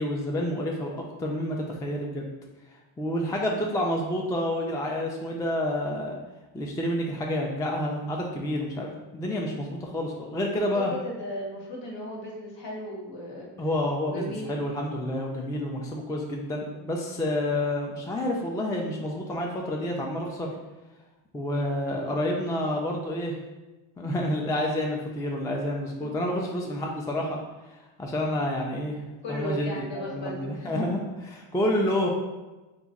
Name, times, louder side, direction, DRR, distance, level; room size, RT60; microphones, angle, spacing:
voice 1, 0.0-2.3 3.0-6.2 6.5-10.9 13.6-20.5 21.3-23.4 24.0-27.4 28.0-29.0 29.3-32.1, left 1 dB, 10° left, 0 dB, 0.3 m, -29 dB
voice 2, 10.5-13.5 14.1-14.5 26.0-26.1 29.2-30.8, equal, 60° left, -2 dB, 1.2 m, -36 dB
2.9 x 2.5 x 3.7 m, 1.1 s
cardioid pair, 85°, 49 cm